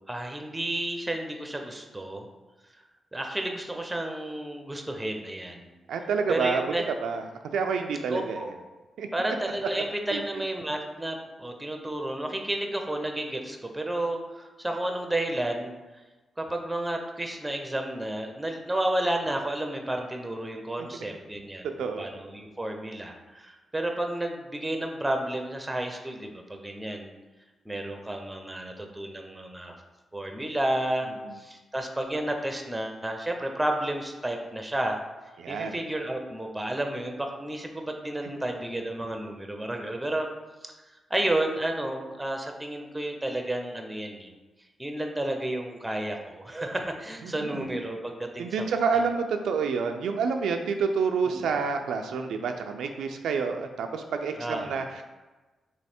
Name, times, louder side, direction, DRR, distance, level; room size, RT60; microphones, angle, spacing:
voice 1, 0.1-2.3 3.1-5.7 6.3-6.8 8.1-8.5 9.1-15.7 16.4-27.1 27.6-29.8 30.1-31.1 31.3-35.0 35.5-40.3 40.6-40.7 41.1-44.3 44.8-49.0 51.3-51.6 54.4-54.8, right 1 dB, 10° right, 3 dB, 0.6 m, -31 dB
voice 2, 5.9-6.6 7.0-7.2 7.5-8.5 9.0-9.1 10.1-10.2 21.8-22.1 35.4-35.8 47.2-47.7 48.4-55.0, right 5 dB, 85° right, 5 dB, 0.3 m, -28 dB
3.1 x 3.1 x 4.3 m, 1.2 s
cardioid pair, 80°, 0 cm